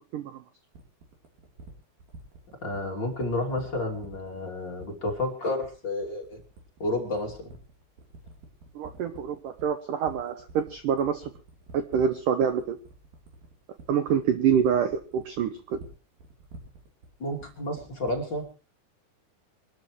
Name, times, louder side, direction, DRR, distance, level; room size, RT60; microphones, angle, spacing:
sound 1, 0.7-18.5, right 3 dB, 55° right, 5.2 m, -48 dB
voice 1, 2.6-6.4 6.8-7.5 17.2-18.5, left 1 dB, 30° left, 1 dB, 2.9 m, -31 dB
voice 2, 8.8-11.3 11.7-12.8 13.9-15.8, right 8 dB, 70° right, 9 dB, 2.0 m, -26 dB
25.5 x 13.0 x 3.2 m, 0.34 s
omnidirectional pair, 5.1 m